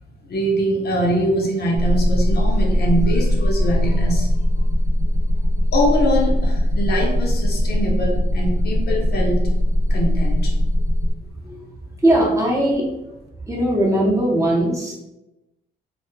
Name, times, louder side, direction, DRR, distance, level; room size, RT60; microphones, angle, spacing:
voice 1, 0.3-4.6 5.7-9.4 9.9-10.5, equal, 55° left, -1 dB, 0.6 m, -23 dB
sound 1, 1.7-11.1, equal, 70° right, 0.5 m, -19 dB
voice 2, 12.0-12.9 13.5-14.9, right 1 dB, 15° right, -4 dB, 0.8 m, -19 dB
2.2 x 2.0 x 3.1 m, 0.95 s
cardioid pair, 90°, 20 cm